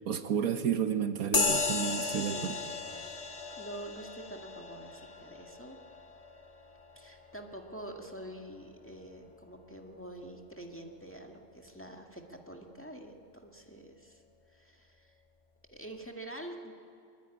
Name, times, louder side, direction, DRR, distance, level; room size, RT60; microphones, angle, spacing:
voice 1, 0.0-2.5, right 8 dB, 75° right, 9 dB, 1.5 m, -31 dB
sound 1, 1.3-9.2, left 3 dB, 25° left, 1.6 m, -36 dB
voice 2, 2.0-3.2 3.6-5.8 6.9-14.2 14.5-15.2 15.7-16.7, right 1 dB, 10° left, 2 dB, 1.8 m, -46 dB
23.0 x 22.5 x 9.9 m, 2.4 s
omnidirectional pair, 1.5 m